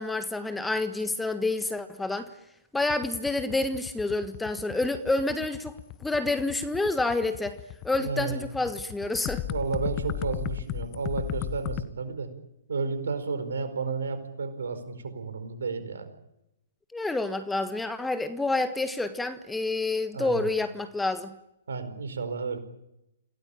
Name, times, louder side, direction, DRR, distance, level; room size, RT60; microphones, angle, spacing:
voice 1, 0.0-2.3 2.7-7.5 7.8-9.4 16.9-21.3, left 2 dB, 5° left, 1.5 m, -28 dB
sound 1, 2.8-11.8, left 14 dB, 30° left, 1.4 m, -35 dB
voice 2, 8.0-8.4 9.4-12.3 12.7-16.1 20.1-20.5 21.7-22.6, right 4 dB, 65° right, 4.7 m, -32 dB
27.5 x 17.5 x 9.0 m
figure-of-eight pair, 120°, 0 cm